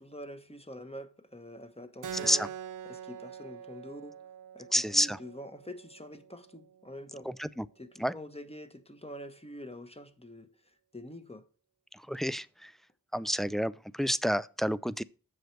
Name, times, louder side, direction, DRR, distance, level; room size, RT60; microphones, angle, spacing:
voice 1, 0.0-2.5 2.8-4.2 4.5-7.3 7.8-10.5 10.9-11.5, equal, 15° left, 1.2 m, -45 dB
Keyboard (musical), 2.0-7.1, right 9 dB, 65° right, 0.5 m, -45 dB
voice 2, 4.7-5.2 7.4-7.6 8.0-8.1 12.1-12.7 13.1-15.0, equal, ahead, 0.4 m, -29 dB
7.8 x 6.5 x 4.5 m
wide cardioid pair, 45°, 34 cm